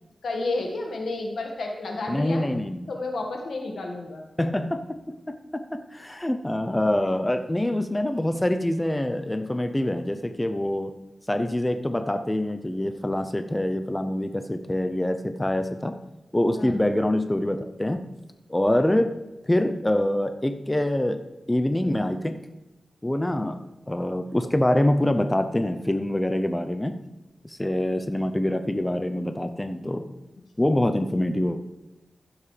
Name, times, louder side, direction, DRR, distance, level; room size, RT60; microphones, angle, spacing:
voice 1, 0.2-2.4 2.9-4.2 16.5-16.7 30.6-30.8, left 2 dB, 80° left, 2 dB, 1.7 m, -31 dB
voice 2, 2.1-2.8 4.4-10.9 11.3-16.0 16.3-18.1 18.5-19.2 19.4-21.2 21.5-22.5 23.0-27.1 27.4-30.1 30.6-31.6, left 1 dB, 15° left, 8 dB, 0.6 m, -25 dB
15.5 x 7.3 x 3.3 m, 1.0 s
cardioid pair, 60°, 0 cm